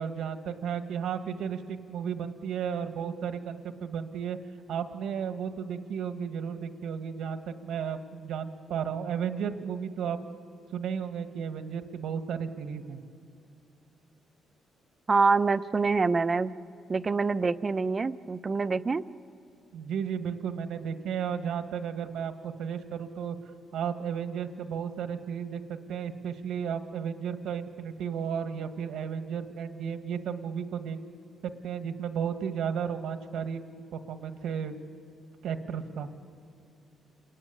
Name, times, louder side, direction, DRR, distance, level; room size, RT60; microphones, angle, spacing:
voice 1, 0.0-4.4 4.7-10.2 10.7-13.0 19.7-23.4 23.7-31.0 31.4-33.6 33.9-34.7 35.4-36.1, right 7 dB, 80° right, 8 dB, 1.7 m, -33 dB
voice 2, 15.1-16.5 16.9-19.0, right 4 dB, 30° right, 12 dB, 0.8 m, -25 dB
28.0 x 21.5 x 9.8 m, 2.6 s
cardioid pair, 90°, 0 cm